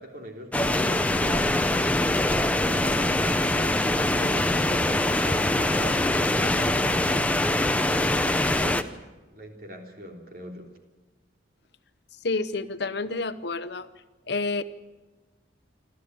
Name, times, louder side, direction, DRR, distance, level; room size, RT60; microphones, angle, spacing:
voice 1, 0.0-1.9 2.6-7.3 7.9-8.9 9.3-10.7, equal, 50° right, 2 dB, 3.4 m, -41 dB
sound 1, 0.5-8.8, left 1 dB, 5° left, 0.7 m, -23 dB
voice 2, 12.2-13.9 14.3-14.6, left 3 dB, 60° left, 13 dB, 0.8 m, -29 dB
27.0 x 13.0 x 9.3 m, 1.2 s
head